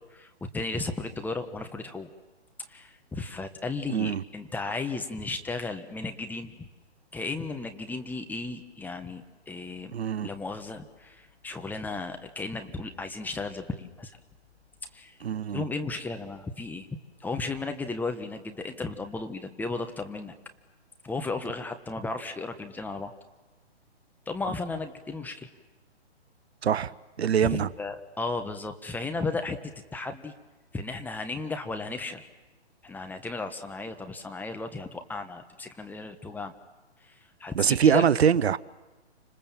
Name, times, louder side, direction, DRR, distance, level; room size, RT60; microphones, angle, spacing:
voice 1, 0.1-2.1 2.7-6.7 7.1-9.9 10.2-14.2 14.9-15.2 15.5-16.9 17.2-20.3 21.0-23.1 24.3-25.5 27.4-29.6 29.9-30.3 30.7-32.3 32.8-36.6 37.0-37.1 37.4-38.0, left 3 dB, 5° left, 1.2 m, -34 dB
voice 2, 3.9-4.2 9.9-10.3 15.2-15.6 26.6-26.9 27.2-27.7 37.6-38.6, right 8 dB, 70° right, 0.9 m, -23 dB
29.5 x 26.5 x 7.4 m
hypercardioid pair, 135°, 33 cm